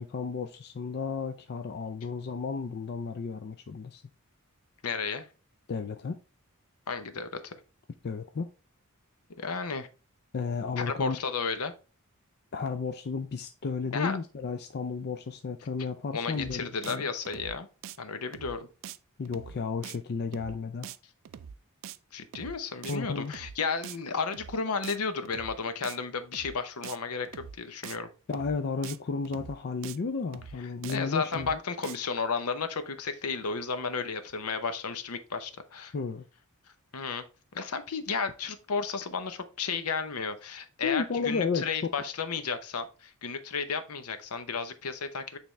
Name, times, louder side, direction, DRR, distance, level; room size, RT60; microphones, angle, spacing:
voice 1, 0.0-4.0 5.7-6.2 8.0-8.5 10.3-11.2 12.5-17.1 19.2-20.9 22.9-23.3 28.3-31.5 35.9-36.3 40.8-41.7, left 5 dB, 45° left, 0.4 m, -33 dB
voice 2, 4.8-5.3 6.9-7.5 9.4-9.9 10.8-11.7 13.9-14.2 16.1-17.7 18.0-18.7 22.1-28.1 30.9-35.9 36.9-37.2 37.5-45.4, left 5 dB, 75° left, 0.8 m, -33 dB
sound 1, 16.3-16.6 16.8-17.0 17.2-17.6 17.8-18.0 18.3-18.6 18.8-19.0 19.2-19.6 19.8-20.0 20.3-20.6 20.8-21.0 21.2-21.6 21.8-22.0 22.3-22.6 22.8-23.0 23.2-23.6 23.8-24.0 24.3-24.6 24.8-25.0 25.2-25.6 25.8-26.0 26.3-26.6 26.8-27.0 27.2-27.6 27.8-28.0 28.3-28.6 28.8-29.0 29.2-29.6 29.8-30.0 30.3-30.6 30.8-31.0 31.2-31.6 31.8-32.0, right 8 dB, 60° right, 0.3 m, -43 dB
8.7 x 3.5 x 3.2 m
head